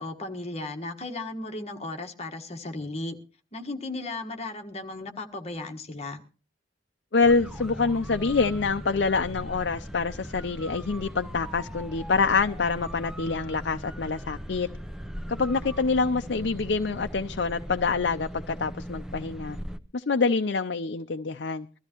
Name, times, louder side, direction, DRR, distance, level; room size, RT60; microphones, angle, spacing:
voice 1, 0.0-3.2 3.5-6.2, left 2 dB, 35° left, 1.5 m, -35 dB
voice 2, 7.1-14.7 15.3-19.6 19.9-21.7, left 4 dB, 65° left, 0.6 m, -26 dB
sound 1, 7.2-19.8, equal, 5° right, 0.7 m, -39 dB
22.0 x 13.5 x 3.0 m
head